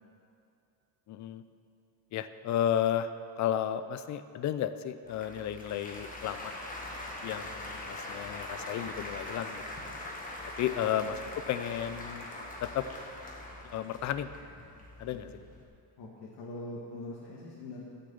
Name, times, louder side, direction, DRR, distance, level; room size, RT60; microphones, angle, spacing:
voice 1, 1.1-1.4 2.1-3.1 3.4-6.5 7.2-9.6 10.6-12.3 12.6-12.8 13.7-14.3 15.0-15.3, left 10 dB, 40° left, 12 dB, 0.5 m, -33 dB
Applause, 5.0-15.6, left 1 dB, 20° left, 1.4 m, -42 dB
voice 2, 10.7-11.0 15.1-15.3 16.0-17.8, left 2 dB, 60° left, -5 dB, 1.7 m, -43 dB
13.5 x 6.8 x 7.0 m, 2.5 s
cardioid pair, 155°, 45 cm